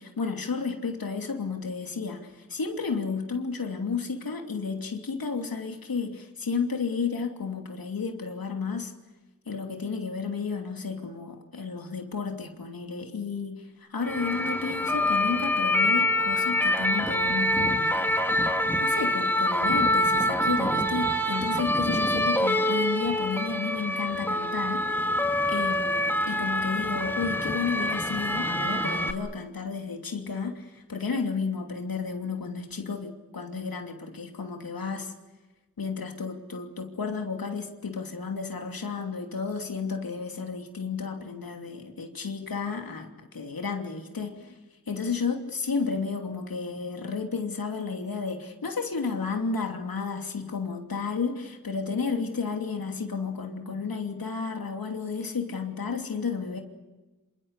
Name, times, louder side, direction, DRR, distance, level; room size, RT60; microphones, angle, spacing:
voice 1, 0.0-8.9 9.5-18.0 18.8-25.0 25.5-35.1 35.8-44.6 44.9-56.6, left 5 dB, 85° left, 4 dB, 2.9 m, -32 dB
sound 1, 14.0-29.1, left 1 dB, 5° left, 2.3 m, -26 dB
27.5 x 27.5 x 6.7 m, 1.1 s
wide cardioid pair, 90°, 34 cm